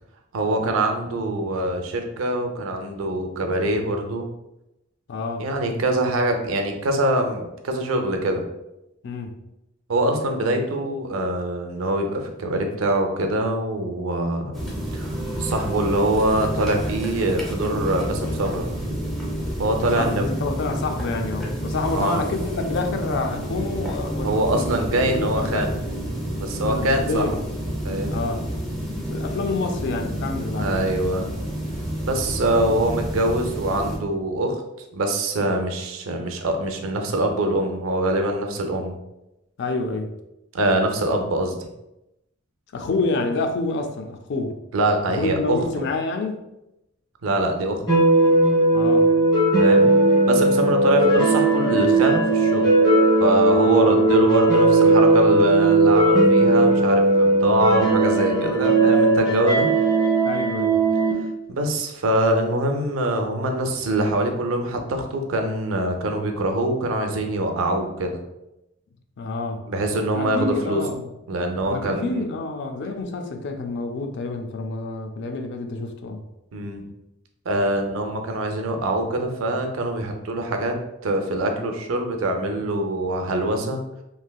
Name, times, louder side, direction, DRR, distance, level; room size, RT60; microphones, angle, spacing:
voice 1, 0.3-4.3 5.4-8.5 9.9-14.5 14.9-15.1 15.4-18.8 19.6-20.3 21.9-22.2 24.2-25.8 26.4-27.3 27.8-28.2 30.6-31.3 32.0-34.6 34.9-39.0 40.5-41.7 44.7-45.7 47.2-47.8 49.6-49.9 50.3-52.8 53.2-59.7 61.5-68.2 69.7-70.8 71.3-72.3 76.5-76.8 77.5-80.8 81.0-83.8, right 1 dB, 90° right, 4 dB, 0.5 m, -24 dB
voice 2, 5.1-5.5 9.0-9.4 19.8-25.7 26.6-27.4 28.1-28.5 29.1-30.8 39.6-40.1 42.7-44.6 45.1-46.4 48.7-49.1 53.7-54.2 60.2-60.8 69.2-69.6 70.1-71.1 71.7-76.3, left 3 dB, 60° left, 5 dB, 0.4 m, -28 dB
sound 1, 14.5-34.0, equal, ahead, 0.6 m, -29 dB
sound 2, 47.9-61.1, right 2 dB, 25° left, 1.2 m, -17 dB
3.2 x 2.5 x 2.3 m, 0.90 s
head